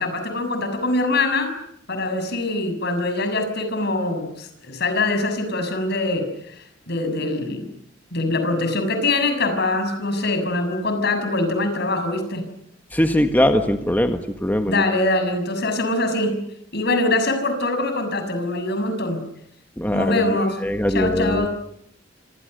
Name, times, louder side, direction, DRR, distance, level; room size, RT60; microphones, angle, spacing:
voice 1, 0.0-1.5 1.9-6.3 6.9-7.7 8.1-12.5 14.6-16.4 16.7-19.2 19.9-20.6 20.9-21.5, left 2 dB, 60° left, 8 dB, 6.8 m, -23 dB
voice 2, 12.9-14.8 19.8-21.5, left 1 dB, 10° left, 6 dB, 1.5 m, -21 dB
28.0 x 26.0 x 6.7 m, 0.72 s
head